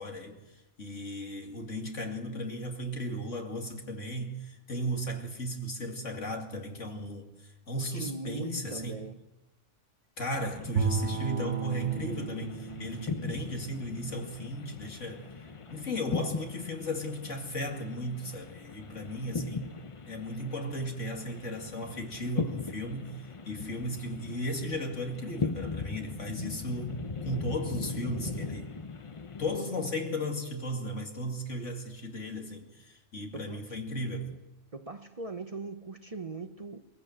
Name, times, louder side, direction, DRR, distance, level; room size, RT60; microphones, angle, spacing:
voice 1, 0.0-9.0 10.2-15.3 15.7-19.8 20.1-28.7 29.4-34.4, equal, 80° left, 2.7 m, -36 dB
voice 2, 7.7-9.2 33.3-33.8 34.7-36.8, right 3 dB, 35° right, 0.8 m, -40 dB
sound 1, 10.3-29.6, left 4 dB, 30° left, 0.7 m, -39 dB
Bowed string instrument, 10.8-15.0, right 5 dB, 80° right, 1.5 m, -35 dB
21.5 x 15.5 x 7.8 m
omnidirectional pair, 1.3 m